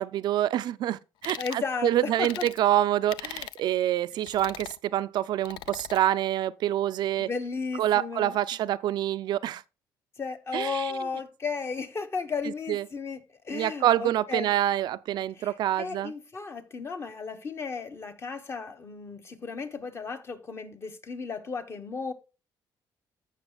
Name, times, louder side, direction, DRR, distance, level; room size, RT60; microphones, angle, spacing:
voice 1, 0.0-7.3 7.8-9.6 10.5-10.9 12.4-12.9 13.5-16.1, right 12 dB, 65° right, 0.4 m, -26 dB
sound 1, 1.2-1.6 2.2-2.6 3.1-3.6 4.3-4.8 5.4-6.0, left 12 dB, 80° left, 0.4 m, -40 dB
voice 2, 1.4-2.4 7.2-8.3 10.2-13.2 13.4-14.5 15.4-15.5 15.8-22.1, left 5 dB, 35° left, 1.2 m, -34 dB
15.0 x 5.8 x 2.3 m
cardioid pair, 110°, 8 cm